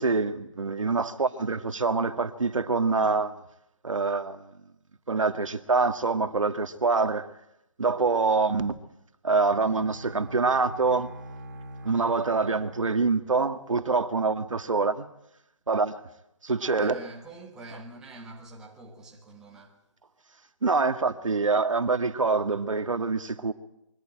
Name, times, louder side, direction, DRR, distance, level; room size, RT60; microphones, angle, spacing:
voice 1, 0.0-3.3 3.8-4.5 5.1-7.3 7.8-8.7 9.2-11.1 11.8-15.1 15.7-16.0 16.4-17.0 20.6-23.5, right 4 dB, 70° right, 1.8 m, -25 dB
Bowed string instrument, 9.3-13.7, right 1 dB, 30° right, 3.5 m, -44 dB
voice 2, 16.6-19.8, right 2 dB, 5° right, 1.3 m, -46 dB
23.5 x 14.5 x 9.0 m
figure-of-eight pair, 165°, 17 cm